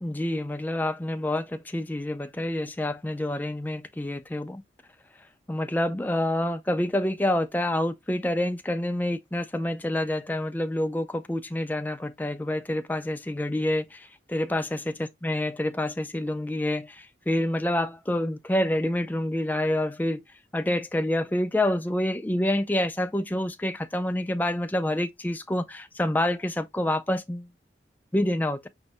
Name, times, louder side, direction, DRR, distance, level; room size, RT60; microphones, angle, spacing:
voice 1, 0.0-4.6 5.5-14.8 15.2-20.2 20.5-27.5 28.1-28.7, left 1 dB, 10° left, 0.3 m, -27 dB
5.2 x 2.6 x 3.4 m
head